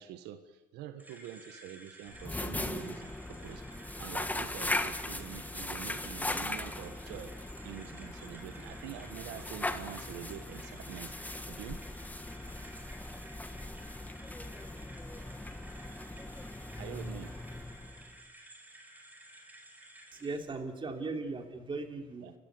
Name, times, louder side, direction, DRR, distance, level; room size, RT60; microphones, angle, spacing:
voice 1, 0.0-3.6 4.0-11.8 16.7-17.3 22.2-22.3, right 11 dB, 90° right, 9 dB, 1.5 m, -46 dB
sound 1, 1.0-20.4, right 1 dB, 10° right, 4.6 m, -53 dB
sound 2, 2.1-18.2, left 2 dB, 10° left, 1.5 m, -39 dB
voice 2, 20.1-22.3, right 3 dB, 30° right, 4 dB, 3.3 m, -38 dB
29.5 x 15.0 x 9.7 m, 1.2 s
cardioid pair, 110°, 17 cm